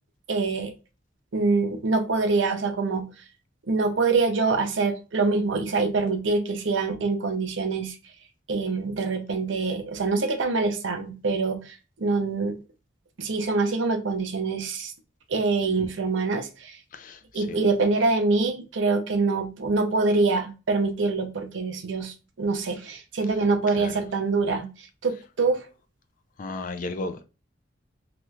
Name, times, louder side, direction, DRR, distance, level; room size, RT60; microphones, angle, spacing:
voice 1, 0.3-0.7 1.3-3.1 3.7-8.0 8.5-12.6 13.2-14.9 15.3-16.8 17.3-25.7, right 3 dB, 85° right, 0.7 m, -25 dB
voice 2, 16.9-17.6 23.3-23.9 25.1-25.2 26.4-27.2, left 2 dB, 45° left, 0.4 m, -36 dB
3.1 x 3.0 x 2.3 m
head